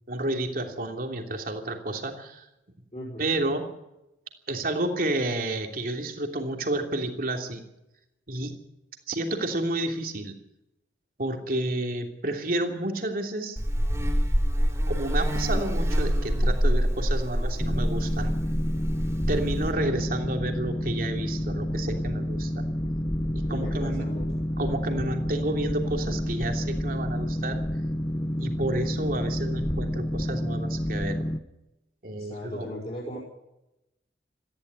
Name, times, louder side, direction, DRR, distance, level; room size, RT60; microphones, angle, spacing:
voice 1, 0.1-2.5 3.2-3.7 4.5-7.6 8.3-8.5 9.1-10.3 11.2-13.6 14.9-18.3 19.3-22.6 23.3-24.1 24.6-27.6 28.4-31.2 32.0-32.7, right 1 dB, 50° right, 4 dB, 3.1 m, -30 dB
voice 2, 2.9-3.3 17.3-17.6 23.5-24.3 32.2-33.2, left 1 dB, 35° left, -5 dB, 5.2 m, -38 dB
Buzz, 13.6-19.7, equal, 15° right, 3.8 m, -25 dB
Boat Water vehicle, 17.6-31.4, equal, 20° left, 0.9 m, -29 dB
18.0 x 15.0 x 9.7 m, 0.92 s
head